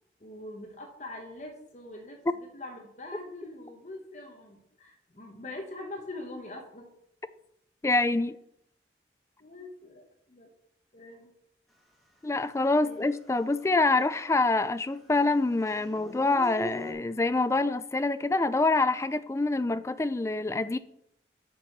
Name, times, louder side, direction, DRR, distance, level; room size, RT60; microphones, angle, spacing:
voice 1, 0.2-2.2 2.5-6.9 9.4-10.5 10.9-11.3 12.7-13.1, left 2 dB, 40° left, 1.1 m, -43 dB
voice 2, 7.8-8.4 12.2-20.8, left 2 dB, 15° left, 0.3 m, -26 dB
Dog / Siren, 12.6-12.7 13.1-14.6 14.8-16.9, left 1 dB, ahead, 1.3 m, -42 dB
6.3 x 6.0 x 5.8 m
head